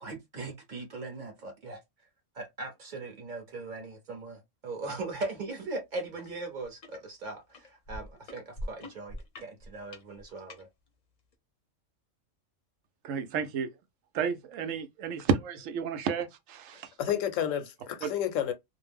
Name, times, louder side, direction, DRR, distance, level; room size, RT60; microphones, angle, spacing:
voice 1, 0.0-1.8 2.3-9.2 9.4-10.7, right 3 dB, 40° right, 0.9 m, -39 dB
sound 1, 6.2-6.3 6.6-7.0 7.5-10.6 11.3-11.4, equal, 45° left, 0.5 m, -42 dB
voice 2, 13.0-13.7 14.1-16.9 18.0-18.1, right 6 dB, 85° right, 1.0 m, -31 dB
voice 3, 16.7-18.5, left 10 dB, 85° left, 1.0 m, -31 dB
2.5 x 2.0 x 3.3 m
omnidirectional pair, 1.3 m